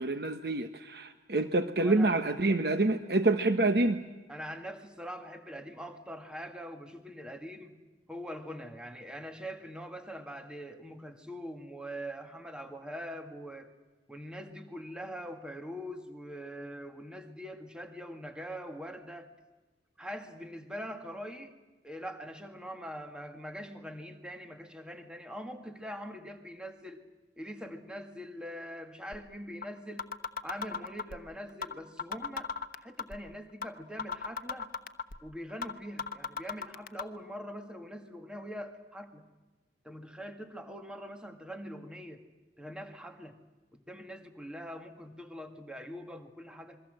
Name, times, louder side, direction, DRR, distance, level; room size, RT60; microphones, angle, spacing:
voice 1, 0.0-4.0, right 2 dB, 60° right, 9 dB, 1.1 m, -27 dB
voice 2, 1.8-2.1 4.3-7.8 8.1-13.7 14.1-19.3 20.0-21.6 21.8-27.0 27.4-30.1 30.4-34.7 35.2-39.3 39.8-42.2 42.6-43.4 43.7-46.8, equal, 5° right, 6 dB, 1.9 m, -43 dB
sound 1, 29.1-29.2 29.6-29.7 30.0-31.2 31.6-31.7 32.0-33.2 33.6-33.7 34.0-35.2 35.6-35.7 36.0-37.0, left 5 dB, 50° left, 1.0 m, -35 dB
27.0 x 22.5 x 7.8 m, 1.2 s
head